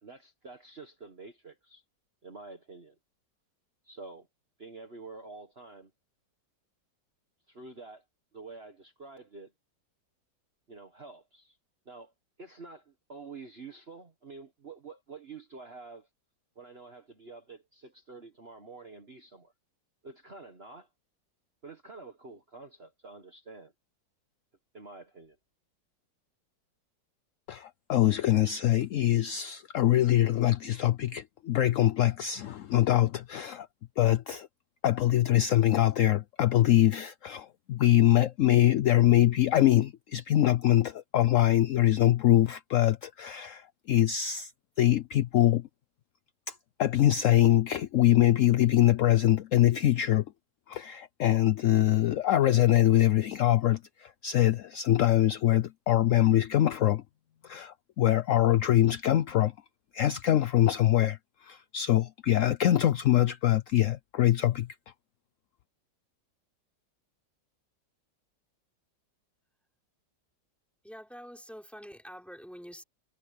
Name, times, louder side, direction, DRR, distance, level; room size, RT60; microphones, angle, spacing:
voice 1, 0.0-1.8 2.2-2.9 3.8-4.3 4.6-5.9 7.5-8.0 8.3-9.5 10.7-11.6 11.8-12.1 12.4-16.1 16.5-19.5 20.0-20.9 21.6-23.7 24.7-25.4, right 3 dB, 35° right, 1.7 m, -48 dB
voice 2, 27.5-33.7 34.0-34.5 34.8-44.5 44.8-45.7 46.5-50.2 50.7-57.0 57.4-59.5 59.9-64.7, left 13 dB, 70° left, 0.7 m, -24 dB
voice 3, 70.8-72.8, equal, ahead, 5.2 m, -46 dB
omnidirectional pair, 1.9 m